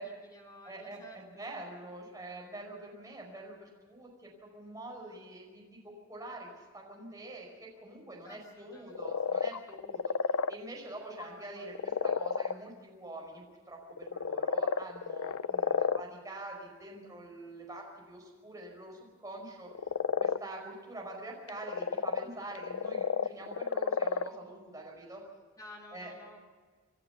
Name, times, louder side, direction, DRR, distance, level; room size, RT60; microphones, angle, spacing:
voice 1, 0.0-1.6 8.2-9.0 9.3-9.4 11.1-11.7 25.6-26.4, left 1 dB, 15° left, 0 dB, 3.6 m, -53 dB
voice 2, 0.7-5.8 6.1-19.7 20.2-25.2 25.9-26.1, right 1 dB, 15° right, -1 dB, 5.1 m, -45 dB
sound 1, 8.9-10.5 11.2-11.3 11.7-12.5 13.9-16.0 19.7-20.4 21.5-24.3, left 6 dB, 80° left, 0.5 m, -31 dB
28.0 x 11.5 x 8.2 m, 1.4 s
head